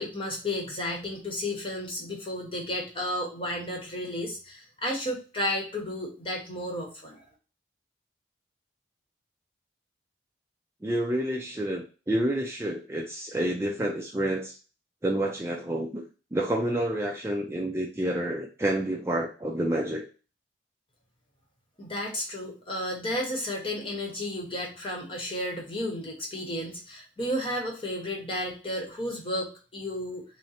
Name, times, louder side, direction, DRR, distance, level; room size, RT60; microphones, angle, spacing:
voice 1, 0.0-7.2 21.8-30.2, left 1 dB, 25° left, 0 dB, 1.0 m, -33 dB
voice 2, 10.8-14.5 15.0-16.1 16.3-20.1, right 1 dB, 15° right, 0 dB, 0.3 m, -29 dB
3.7 x 2.1 x 4.2 m, 0.34 s
head